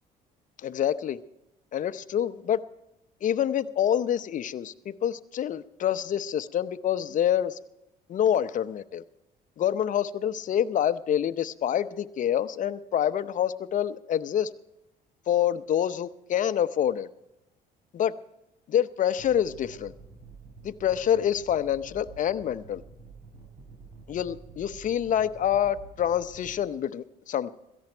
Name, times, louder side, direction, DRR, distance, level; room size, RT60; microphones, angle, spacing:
voice 1, 0.6-1.2 1.7-2.6 3.2-7.6 8.1-9.0 9.6-14.5 15.3-17.1 17.9-18.1 18.7-19.9 20.6-22.8 24.1-27.5, left 10 dB, 50° left, 13 dB, 0.8 m, -27 dB
sound 1, 19.2-26.6, right 4 dB, 40° right, 5.0 m, -49 dB
17.0 x 14.5 x 4.5 m, 0.89 s
cardioid pair, 110°, 17 cm